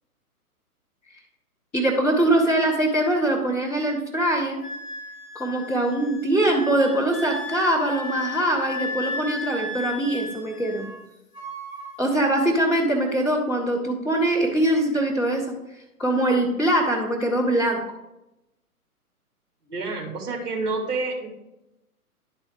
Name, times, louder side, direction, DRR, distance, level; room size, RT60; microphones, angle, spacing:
voice 1, 1.7-4.6 5.3-10.9 12.0-15.5 16.0-17.8, right 1 dB, 5° left, -9 dB, 0.5 m, -22 dB
Wind instrument woodwind instrument, 4.6-11.0 11.3-12.0, left 2 dB, 30° left, 2.9 m, -35 dB
voice 2, 19.7-21.3, right 3 dB, 40° right, -1 dB, 1.8 m, -28 dB
11.0 x 4.1 x 4.8 m, 0.92 s
figure-of-eight pair, 130°, 45 cm